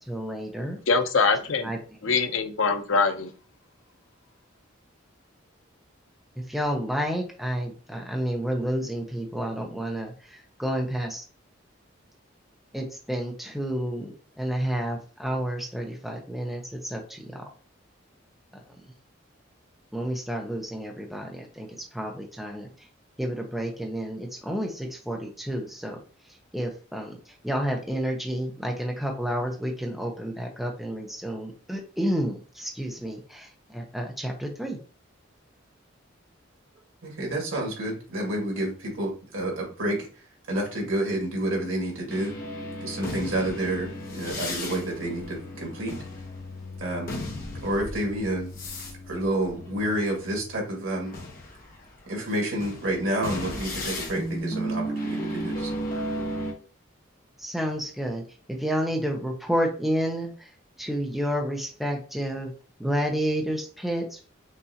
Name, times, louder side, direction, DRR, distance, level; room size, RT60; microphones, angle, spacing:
voice 1, 0.1-0.8 1.6-1.8 6.4-11.2 12.7-17.5 18.5-18.6 19.9-22.7 23.2-26.0 26.5-34.8 57.4-58.2 58.5-60.5 60.8-62.5 62.8-64.3, equal, ahead, 0.8 m, -30 dB
voice 2, 0.9-1.7 2.0-3.3, left 4 dB, 85° left, 0.6 m, -23 dB
voice 3, 37.0-40.0 40.5-42.4 42.8-46.0 46.8-47.2 47.6-48.5 49.1-51.1 52.1-55.9, right 1 dB, 85° right, 2.1 m, -29 dB
sound 1, 42.1-50.6 51.1-56.5, equal, 45° left, 1.2 m, -35 dB
5.6 x 2.6 x 2.8 m
head